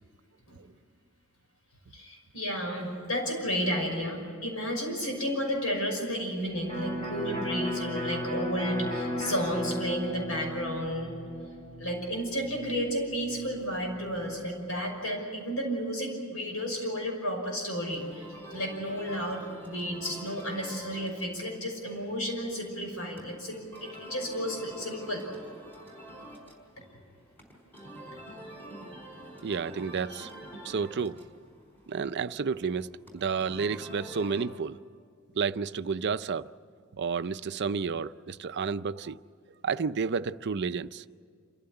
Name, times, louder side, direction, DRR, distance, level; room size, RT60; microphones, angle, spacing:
voice 1, 1.9-11.1 11.8-25.3, equal, 75° left, 5.9 m, -32 dB
Electric guitar, 6.7-14.3, equal, 25° left, 4.8 m, -36 dB
sound 1, 17.8-34.4, right 1 dB, 10° left, 4.7 m, -47 dB
voice 2, 29.4-30.3 30.6-31.2 31.9-32.9 33.1-34.8 35.4-36.5 37.0-39.2 39.6-41.0, right 5 dB, 55° right, 0.5 m, -31 dB
27.5 x 15.0 x 9.8 m
head